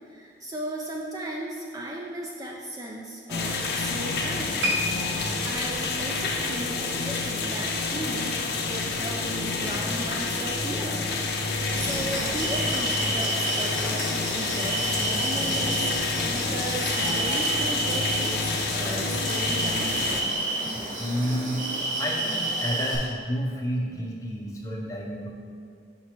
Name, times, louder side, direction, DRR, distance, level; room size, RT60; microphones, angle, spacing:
voice 1, 0.1-4.7 5.4-11.0 11.7-20.0, right 1 dB, 20° right, -1 dB, 0.3 m, -36 dB
sound 1, 3.3-20.2, left 3 dB, 55° left, 0.6 m, -28 dB
sound 2, 4.6-7.9 8.2-8.5 9.1-9.2, left 1 dB, 80° right, 0.7 m, -33 dB
sound 3, 11.7-23.0, right 2 dB, 45° right, 1.4 m, -30 dB
voice 2, 20.7-21.6 22.0-25.3, equal, 15° left, -2 dB, 0.7 m, -30 dB
5.8 x 3.1 x 5.7 m, 2.3 s
head